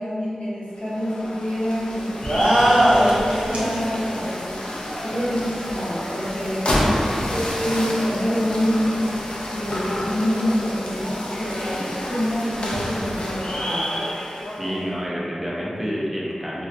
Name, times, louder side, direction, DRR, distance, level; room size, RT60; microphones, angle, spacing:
voice 1, 0.0-6.7 7.1-9.2 9.5-14.0, equal, 75° left, -10 dB, 0.8 m, -26 dB
sound 1, 0.8-14.9, left 1 dB, 55° left, 0.4 m, -28 dB
sound 2, 2.2-3.8, equal, 70° right, 0.5 m, -18 dB
voice 2, 7.1-7.5 14.6-16.7, equal, 10° right, -6 dB, 0.5 m, -29 dB
2.3 x 2.2 x 2.5 m, 2.3 s
cardioid pair, 45°, 2 cm